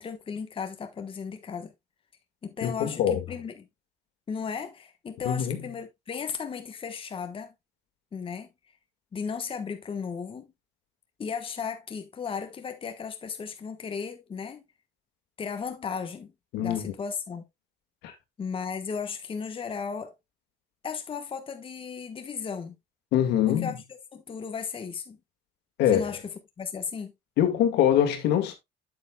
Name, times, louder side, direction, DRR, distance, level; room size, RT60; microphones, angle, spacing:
voice 1, 0.0-1.7 2.4-3.7 4.3-7.5 8.1-8.5 9.1-10.5 11.2-14.6 15.4-16.3 16.6-17.4 18.4-20.1 20.8-22.7 23.5-23.7 24.1-25.2 25.9-26.2 26.6-27.1, left 6 dB, 30° left, 1.2 m, -35 dB
voice 2, 2.6-3.2 5.3-5.6 16.5-16.9 18.0-18.1 23.1-23.7 25.8-26.2 27.4-28.5, left 10 dB, 85° left, 1.9 m, -24 dB
8.6 x 7.8 x 2.3 m
cardioid pair, 110°, 17 cm